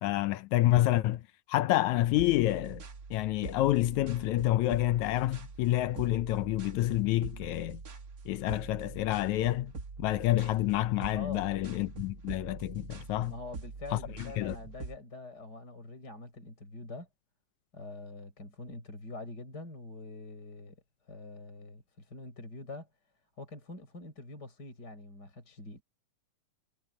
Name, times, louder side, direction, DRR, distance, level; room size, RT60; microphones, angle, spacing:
voice 1, 0.0-1.2 1.5-2.8 3.1-7.8 8.3-9.7 10.0-13.3 13.9-14.0 14.4-14.6, left 15 dB, 75° left, 1.9 m, -28 dB
sound 1, 1.9-15.0, right 4 dB, 40° right, 1.5 m, -44 dB
voice 2, 11.1-11.5 13.2-17.1 17.7-20.8 21.0-22.9 23.4-25.8, left 2 dB, 30° left, 5.7 m, -45 dB
omnidirectional pair, 3.7 m